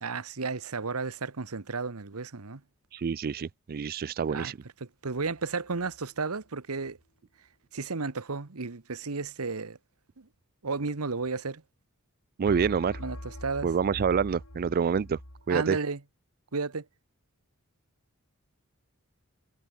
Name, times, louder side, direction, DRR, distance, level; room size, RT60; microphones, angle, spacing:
voice 1, 0.0-2.6 4.3-4.5 4.8-7.0 7.7-9.8 10.2-10.3 10.6-11.6 13.0-13.7 15.5-16.0 16.5-16.8, right 4 dB, 85° right, 1.2 m, -33 dB
voice 2, 2.9-4.6 12.4-13.0 13.6-15.2 15.5-15.8, right 6 dB, 45° right, 0.4 m, -27 dB
sound 1, 5.4-6.0 12.5-15.5, left 1 dB, 85° left, 6.0 m, -43 dB
head